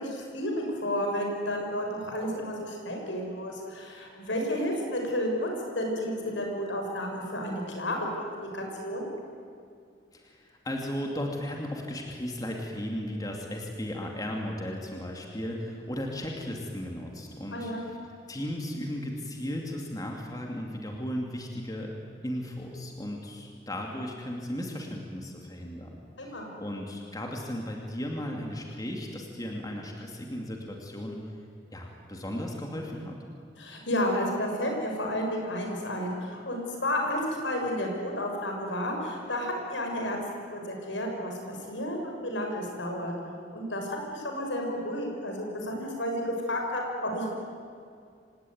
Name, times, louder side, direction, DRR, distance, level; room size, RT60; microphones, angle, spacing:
voice 1, 0.0-9.1 17.5-17.9 26.2-26.5 33.6-43.1 43.5-47.4, left 1 dB, 80° left, 1 dB, 5.9 m, -31 dB
voice 2, 10.1-17.7 18.3-21.9 22.2-26.0 26.3-31.2 31.7-33.2, left 1 dB, 20° left, 1 dB, 2.4 m, -35 dB
26.5 x 18.0 x 9.4 m, 2.3 s
head